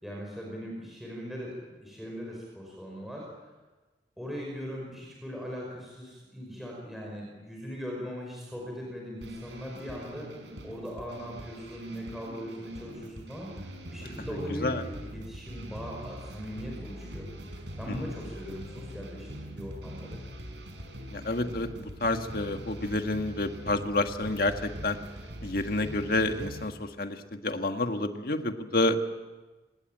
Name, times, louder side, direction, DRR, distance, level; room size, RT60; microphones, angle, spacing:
voice 1, 0.0-3.3 4.2-10.3 10.6-17.3 17.8-20.2, equal, ahead, -2 dB, 5.4 m, -40 dB
sound 1, 9.2-26.7, equal, 75° right, 5.4 m, -43 dB
voice 2, 21.1-25.0 25.4-29.0, left 2 dB, 55° left, 6 dB, 1.7 m, -29 dB
25.5 x 20.0 x 9.1 m, 1.2 s
head